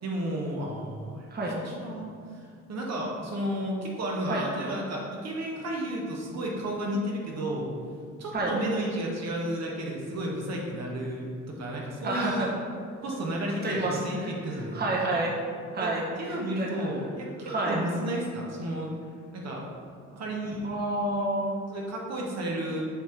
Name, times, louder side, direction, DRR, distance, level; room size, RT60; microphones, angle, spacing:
voice 1, 0.0-1.3 1.6-7.7 8.2-12.5 13.0-14.8 15.8-19.0 19.3-19.7 20.2-20.7 21.7-22.8, right 1 dB, 60° right, -2 dB, 1.3 m, -32 dB
voice 2, 1.3-1.6 4.3-4.5 8.3-8.5 12.0-12.5 13.6-14.3 14.7-15.3 15.7-16.0 16.5-16.9 17.5-17.8 20.6-21.7, right 2 dB, 35° right, -3 dB, 1.2 m, -29 dB
7.2 x 2.9 x 5.0 m, 2.2 s
cardioid pair, 90°, 30 cm